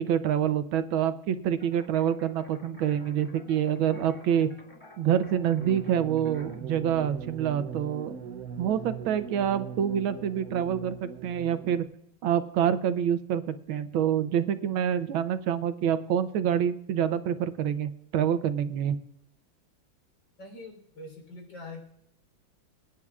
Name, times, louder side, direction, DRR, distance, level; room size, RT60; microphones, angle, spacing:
voice 1, 0.0-4.5 5.0-8.1 8.6-11.8 12.2-19.0, right 9 dB, 85° right, 11 dB, 1.6 m, -27 dB
sound 1, 1.6-6.6, equal, 15° left, 2.4 m, -52 dB
sound 2, 5.6-11.8, right 7 dB, 60° right, 1.0 m, -40 dB
voice 2, 20.4-21.8, left 2 dB, 70° left, 2 dB, 4.4 m, -43 dB
26.5 x 9.5 x 2.4 m, 0.76 s
omnidirectional pair, 2.1 m